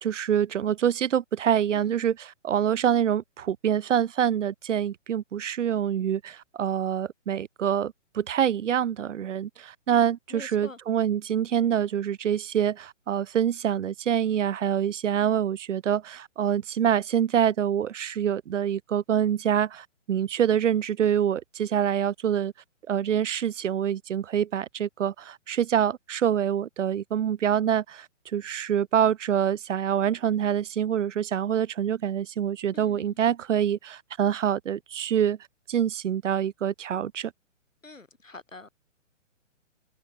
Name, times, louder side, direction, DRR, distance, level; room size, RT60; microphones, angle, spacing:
voice 1, 0.0-22.5 22.9-28.1 28.3-35.4 35.7-37.3, right 9 dB, 75° right, 0.6 m, -26 dB
voice 2, 1.7-2.1 10.3-10.8 32.7-33.1 37.8-38.7, left 3 dB, 90° left, 4.9 m, -45 dB
figure-of-eight pair, 135°, 38 cm